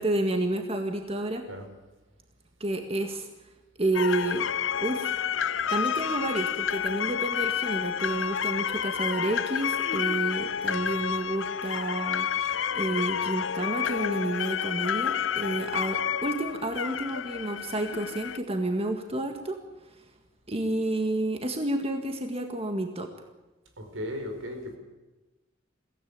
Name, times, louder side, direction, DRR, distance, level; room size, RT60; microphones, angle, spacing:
voice 1, 0.0-1.5 2.6-3.3 3.8-4.5 4.8-5.1 5.7-19.6 20.5-23.1, right 1 dB, 30° right, 5 dB, 1.8 m, -30 dB
sound 1, 3.9-18.4, left 8 dB, 70° left, 0.7 m, -30 dB
voice 2, 23.8-24.8, left 1 dB, 80° right, 5 dB, 4.9 m, -36 dB
22.5 x 16.5 x 8.9 m, 1.1 s
head